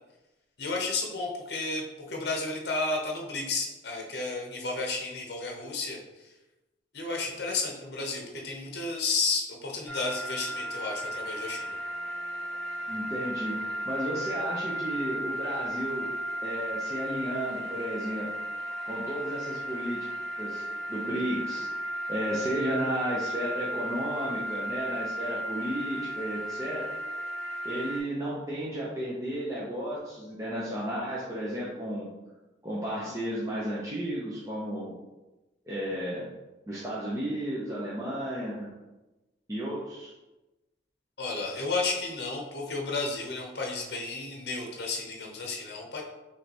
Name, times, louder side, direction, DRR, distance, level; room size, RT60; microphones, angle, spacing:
voice 1, 0.6-6.3 6.9-11.8 41.2-46.0, left 3 dB, 55° left, 0 dB, 0.8 m, -32 dB
sound 1, 9.9-28.0, right 1 dB, 5° left, 1.4 m, -35 dB
voice 2, 12.9-16.1 16.4-18.3 18.9-20.1 20.4-20.6 20.9-21.7 22.1-26.9 27.6-32.1 32.6-34.9 35.7-36.3 36.7-38.7 39.5-40.1, equal, 15° right, -7 dB, 0.7 m, -33 dB
5.5 x 3.3 x 2.9 m, 1.0 s
head